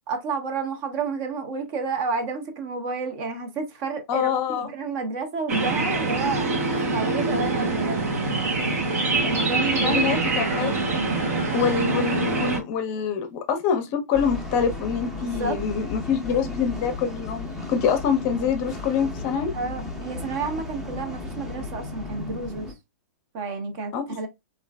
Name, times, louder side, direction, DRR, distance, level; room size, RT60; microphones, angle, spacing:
voice 1, 0.1-6.5 6.9-8.6 9.2-10.4 15.2-15.6 19.5-22.7 23.3-24.3, right 4 dB, 40° right, 0.7 m, -30 dB
voice 2, 4.1-4.7 9.8-10.7 11.5-19.5 23.9-24.3, left 7 dB, 35° left, 0.6 m, -25 dB
sound 1, 5.5-12.6, right 3 dB, 70° right, 0.9 m, -24 dB
sound 2, 14.1-22.7, left 3 dB, 5° right, 0.6 m, -35 dB
3.1 x 2.5 x 2.2 m
hypercardioid pair, 135°, 9 cm